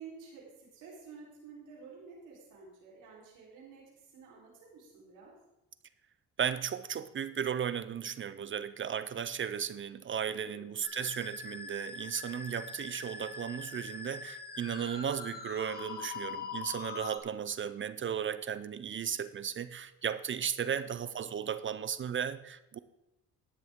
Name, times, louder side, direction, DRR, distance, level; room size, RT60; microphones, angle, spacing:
voice 1, 0.0-3.8 4.1-5.3 10.4-10.7 20.7-21.0, right 5 dB, 85° right, 4.0 m, -51 dB
voice 2, 6.4-22.8, right 8 dB, 40° right, 0.6 m, -35 dB
Musical instrument, 10.8-17.2, left 4 dB, 30° left, 1.8 m, -43 dB
13.5 x 9.7 x 3.7 m
cardioid pair, 90°, 30 cm